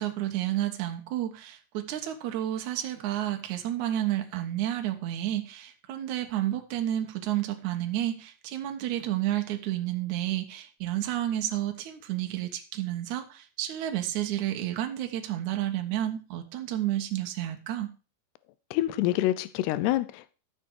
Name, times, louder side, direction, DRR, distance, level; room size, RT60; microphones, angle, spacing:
voice 1, 0.0-17.9, right 13 dB, 80° right, 1.7 m, -31 dB
voice 2, 18.7-20.3, left 15 dB, 80° left, 2.6 m, -27 dB
13.5 x 6.7 x 4.7 m
omnidirectional pair, 5.2 m